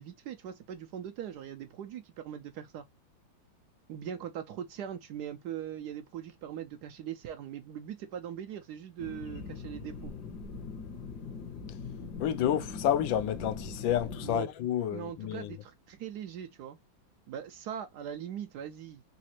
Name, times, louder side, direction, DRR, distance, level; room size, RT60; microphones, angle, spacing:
voice 1, 0.0-2.8 3.9-10.1 14.2-14.5 14.9-16.8 17.3-19.0, right 9 dB, 70° right, 1.0 m, -41 dB
sound 1, 9.0-14.4, left 4 dB, 65° left, 1.4 m, -41 dB
voice 2, 12.2-15.5, left 10 dB, 85° left, 1.4 m, -30 dB
4.1 x 2.5 x 2.8 m
omnidirectional pair, 2.1 m